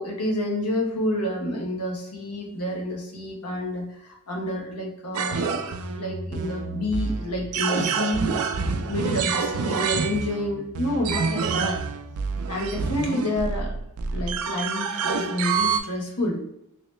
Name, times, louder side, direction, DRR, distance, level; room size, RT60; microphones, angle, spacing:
voice 1, 0.0-8.3 8.9-11.8 12.5-13.7 14.1-16.4, left 1 dB, 85° left, -1 dB, 1.0 m, -29 dB
sound 1, 5.1-15.8, right 5 dB, 70° right, 0.4 m, -27 dB
3.1 x 2.8 x 3.1 m, 0.82 s
head